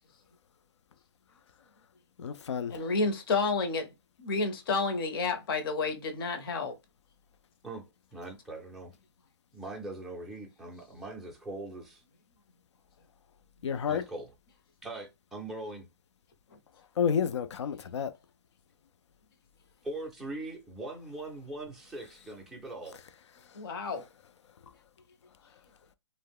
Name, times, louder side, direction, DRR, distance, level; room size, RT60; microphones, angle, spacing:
voice 1, 2.2-2.7 13.6-14.0 17.0-18.1, left 7 dB, 80° left, 0.4 m, -30 dB
voice 2, 2.7-3.9 4.2-6.7 23.6-24.0, left 4 dB, 55° left, 0.7 m, -30 dB
voice 3, 8.1-8.9 9.5-12.0 13.9-14.3 14.8-15.9 19.8-23.0, right 2 dB, ahead, 0.4 m, -41 dB
2.2 x 2.0 x 3.4 m
hypercardioid pair, 150°, 15 cm